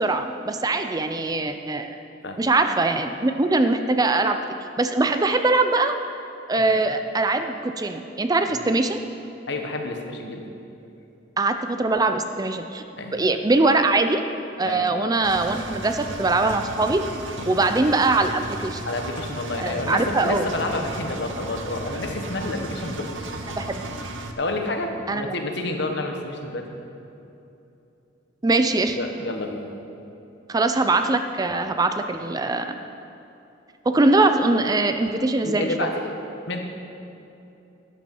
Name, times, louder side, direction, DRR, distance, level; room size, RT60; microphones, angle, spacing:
voice 1, 0.0-2.0 2.4-4.4 4.8-5.9 6.5-9.0 11.4-12.8 13.1-14.2 14.6-17.0 17.5-18.8 19.6-20.5 23.5-23.8 25.1-25.3 28.4-29.0 30.5-32.8 33.9-35.7, right 2 dB, 20° right, 8 dB, 0.4 m, -22 dB
voice 2, 9.5-10.4 13.0-13.2 14.6-14.9 17.4-17.5 18.9-23.1 23.4-23.6 24.4-26.6 29.0-29.7 35.2-36.1 36.5-36.6, left 2 dB, 65° left, 4 dB, 1.3 m, -29 dB
Engine, 15.2-24.3, right 2 dB, 85° right, 0.9 m, -35 dB
12.5 x 9.5 x 5.4 m, 2.8 s
head